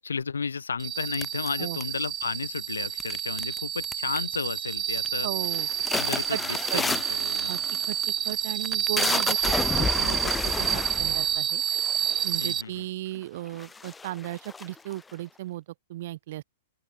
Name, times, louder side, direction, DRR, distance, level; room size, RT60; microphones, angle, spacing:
voice 1, 0.0-5.3 5.9-7.6 12.4-12.9, left 5 dB, 80° left, 1.6 m, -33 dB
sound 1, 0.8-12.6, right 10 dB, 25° right, 1.6 m, -29 dB
sound 2, 1.1-2.2 3.0-3.6 3.8-4.3 4.7-5.1 5.4-12.5 13.2-13.3 13.5-15.1, left 4 dB, 10° left, 0.6 m, -31 dB
voice 2, 5.2-5.7 6.3-6.4 6.7-6.8 7.5-8.0 8.3-11.6 12.2-15.6 15.9-16.4, right 15 dB, 55° right, 5.3 m, -36 dB
open air
figure-of-eight pair, 110°, 0 cm